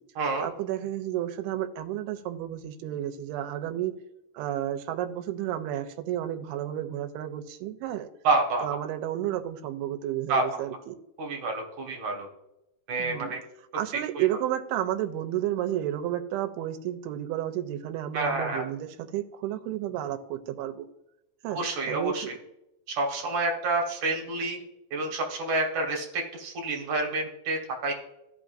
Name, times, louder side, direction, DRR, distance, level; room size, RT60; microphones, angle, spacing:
voice 1, 0.4-3.9 4.3-8.1 8.6-11.0 13.0-13.3 13.7-20.9 21.4-22.3, right 12 dB, 85° right, 8 dB, 2.6 m, -32 dB
voice 2, 8.2-8.6 10.3-10.6 11.2-12.3 12.9-13.4 14.1-14.2 18.1-18.6 21.5-22.2 22.9-24.6 24.9-27.9, right 3 dB, 60° right, 1 dB, 2.4 m, -28 dB
14.5 x 5.7 x 2.5 m, 0.85 s
omnidirectional pair, 4.5 m